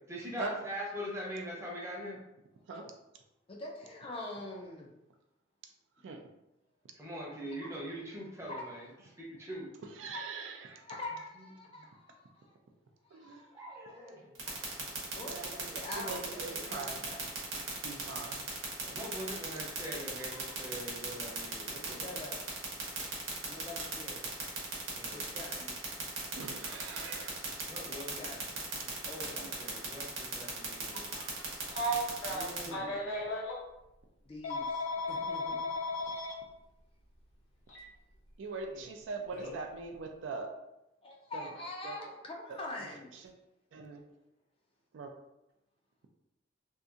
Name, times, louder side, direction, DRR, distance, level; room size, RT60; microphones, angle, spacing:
voice 1, 0.1-2.2 6.9-8.9 9.2-9.7 13.5-14.9 18.8-22.1 24.9-25.3 27.7-28.3 29.4-31.1 32.6-33.4 38.7-38.9, equal, 15° right, -5 dB, 0.7 m, -43 dB
voice 2, 3.5-4.9 7.6-7.8 8.5-9.1 10.1-10.2 10.7-12.5 13.1-14.9 15.2-17.3 20.2-20.6 21.9-22.4 23.5-24.5 25.1-25.7 27.9-28.5 28.8-29.5 30.5-31.8 32.3-33.0 34.2-35.7 41.0-43.1, left 2 dB, 30° left, 0 dB, 0.3 m, -45 dB
voice 3, 10.0-10.8 13.1-13.4 15.3-17.0 17.8-18.4 26.4-27.3 38.4-40.5 41.3-41.5 41.8-42.0 43.7-44.0 44.9-45.1, right 4 dB, 65° right, 4 dB, 0.3 m, -41 dB
sound 1, 14.4-32.7, right 5 dB, 80° right, 0.9 m, -37 dB
Telephone, 31.7-33.6 34.4-36.3 37.7-37.8 39.4-39.6, left 1 dB, 85° left, 0.7 m, -35 dB
2.7 x 2.5 x 2.3 m, 0.90 s
head